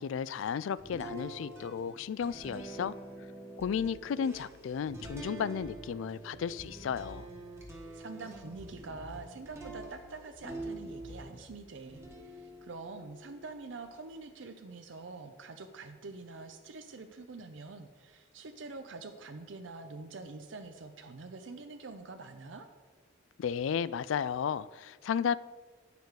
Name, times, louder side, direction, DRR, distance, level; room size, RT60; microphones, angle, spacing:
voice 1, 0.0-3.0 3.6-7.3 23.4-25.4, left 7 dB, 80° left, 0.3 m, -33 dB
sound 1, 0.8-11.4 11.8-14.2, right 2 dB, 15° right, 1.2 m, -47 dB
sound 2, 3.6-11.6, left 2 dB, 45° left, 1.7 m, -57 dB
sound 3, 5.0-5.4 6.6-7.4 8.6-9.4 10.6-11.4, left 1 dB, 15° left, 1.3 m, -50 dB
voice 2, 7.6-22.7, right 3 dB, 75° right, 0.6 m, -46 dB
9.7 x 6.8 x 4.7 m
head